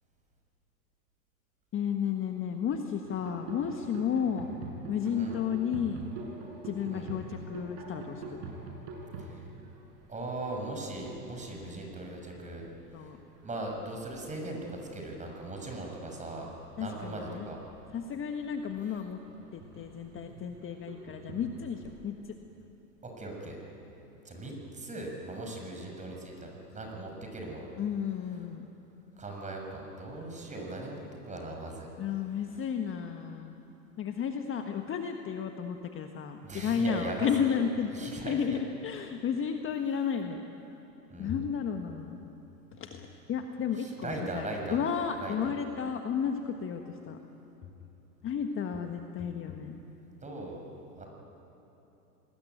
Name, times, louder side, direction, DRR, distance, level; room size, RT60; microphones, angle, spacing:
voice 1, 1.7-4.5 4.9-6.0 6.6-8.4 11.5-11.8 12.9-13.2 16.8-17.5 17.9-19.2 19.5-22.2 27.8-28.7 32.0-33.5 34.0-37.9 38.2-40.4 41.2-42.2 42.8-47.2 48.2-49.8, left 7 dB, 25° left, 5 dB, 1.4 m, -33 dB
sound 1, 3.0-14.4 14.7-15.2 15.5-22.0, right 3 dB, 50° right, 7.1 m, -46 dB
voice 2, 10.1-12.7 13.4-16.5 16.8-17.6 23.0-23.6 24.2-27.7 29.2-31.9 36.4-37.6 37.9-38.6 41.1-41.4 43.8-44.8 45.2-45.3 50.2-50.6 51.0-51.1, right 2 dB, 15° right, 1 dB, 6.3 m, -39 dB
27.0 x 20.0 x 9.3 m, 3.0 s
hypercardioid pair, 105°, 48 cm